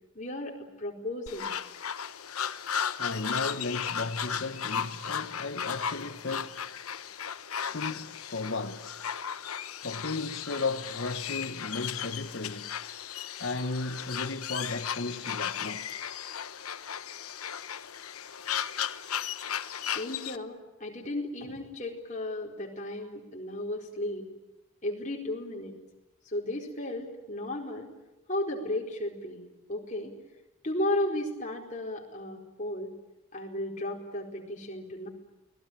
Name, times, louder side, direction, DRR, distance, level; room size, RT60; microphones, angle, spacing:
voice 1, 0.1-1.6 19.9-24.3 24.8-25.7 26.3-27.9 28.3-30.1 30.6-32.9 33.3-35.1, left 1 dB, 35° left, 4.4 m, -34 dB
sound 1, 1.3-20.4, left 8 dB, 85° left, 1.1 m, -35 dB
voice 2, 3.0-6.7 7.7-9.0 9.8-12.8 13.4-15.9, left 3 dB, 55° left, 1.0 m, -35 dB
29.5 x 20.0 x 8.8 m
head